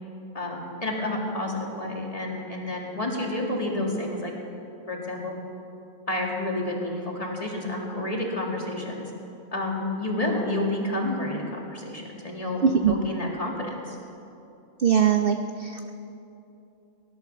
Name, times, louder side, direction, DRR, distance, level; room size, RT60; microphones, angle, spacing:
voice 1, 0.3-4.3 4.8-5.4 6.1-9.1 9.5-14.0, left 1 dB, 25° left, -1 dB, 2.2 m, -30 dB
voice 2, 12.6-12.9 14.8-15.9, right 7 dB, 55° right, 7 dB, 0.6 m, -22 dB
18.5 x 11.5 x 6.9 m, 2.8 s
omnidirectional pair, 1.5 m